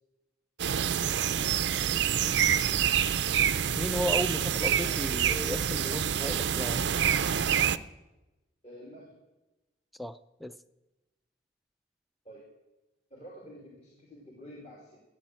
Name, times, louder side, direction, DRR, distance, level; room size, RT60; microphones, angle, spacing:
sound 1, 0.6-7.8, right 9 dB, 65° right, 0.5 m, -27 dB
voice 1, 3.7-6.8 10.0-10.5, equal, ahead, 10 dB, 0.4 m, -34 dB
voice 2, 8.6-9.1 12.2-12.5 13.1-15.0, equal, 35° left, -3 dB, 2.3 m, -48 dB
14.5 x 8.9 x 7.5 m, 1.0 s
head